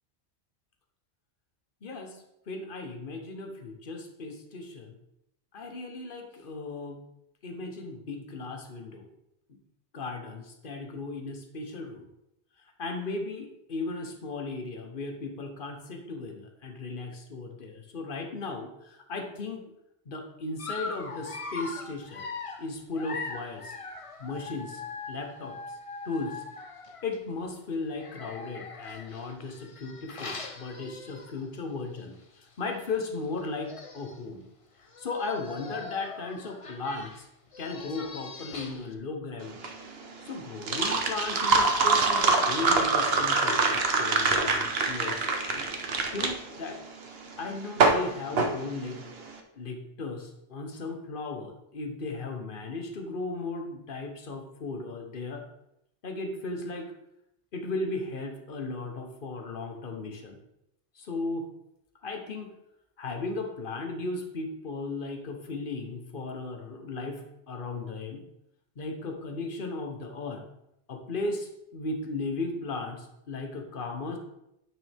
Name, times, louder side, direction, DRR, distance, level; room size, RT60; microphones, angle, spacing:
voice 1, 1.8-4.9 5.5-7.1 7.4-9.1 9.5-9.6 9.9-12.0 12.8-19.7 20.0-22.3 22.6-23.8 24.2-24.8 25.1-25.8 26.0-26.4 27.0-34.4 35.0-37.3 37.6-39.6 40.2-46.8 47.4-49.0 49.5-55.4 56.0-56.9 57.5-60.4 60.9-61.5 62.0-62.5 63.0-68.2 68.8-70.4 70.9-74.2, left 3 dB, 50° left, 4 dB, 1.3 m, -36 dB
Dog, 20.6-27.2 27.9-31.6 32.0-32.1 32.4-32.5 33.4-33.5 33.7-34.2 34.8-38.9, left 3 dB, 35° left, 0.7 m, -41 dB
sound 1, 39.4-49.3, right 4 dB, 60° right, 1.1 m, -25 dB
9.2 x 6.2 x 3.5 m, 0.81 s
omnidirectional pair, 1.2 m